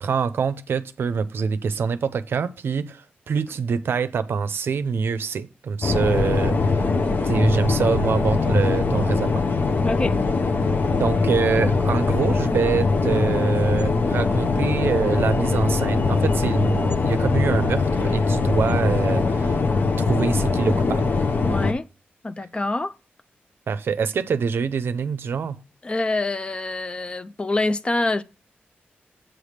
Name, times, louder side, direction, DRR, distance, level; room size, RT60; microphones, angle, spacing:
voice 1, 0.0-6.8 7.2-9.4 11.0-19.6 20.0-21.1 23.7-25.6, right 6 dB, 75° right, 0.5 m, -25 dB
sound 1, 5.8-21.7, left 4 dB, 55° left, 0.7 m, -22 dB
voice 2, 9.8-10.2 21.4-21.9 22.2-22.9 25.8-28.2, left 2 dB, 25° left, 0.4 m, -25 dB
7.8 x 3.3 x 6.4 m
wide cardioid pair, 90°, 4 cm